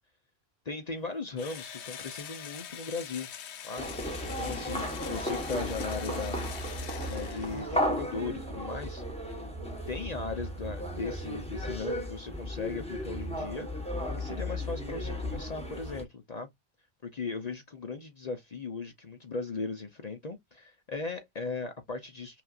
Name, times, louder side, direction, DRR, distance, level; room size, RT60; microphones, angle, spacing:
voice 1, 0.7-3.3 3.6-3.9 4.4-6.5 7.1-9.0 9.9-13.7 14.1-16.5 17.0-22.4, left 4 dB, 45° left, 0.7 m, -37 dB
Engine / Drill, 1.4-7.9, left 9 dB, 90° left, 0.9 m, -44 dB
sound 1, 3.8-16.0, equal, 5° left, 1.2 m, -35 dB
5.8 x 2.4 x 2.4 m
omnidirectional pair, 1.1 m